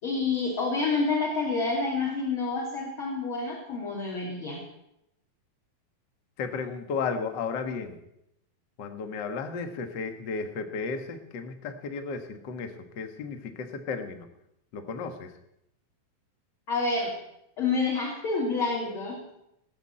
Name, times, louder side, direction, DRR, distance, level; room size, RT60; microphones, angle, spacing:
voice 1, 0.0-4.6 16.7-17.2 17.6-19.2, left 3 dB, 35° left, -4 dB, 3.8 m, -28 dB
voice 2, 6.4-8.0 8.8-14.3 14.7-15.3, left 5 dB, 60° left, 7 dB, 1.1 m, -34 dB
19.0 x 7.1 x 8.6 m, 0.81 s
omnidirectional pair, 4.1 m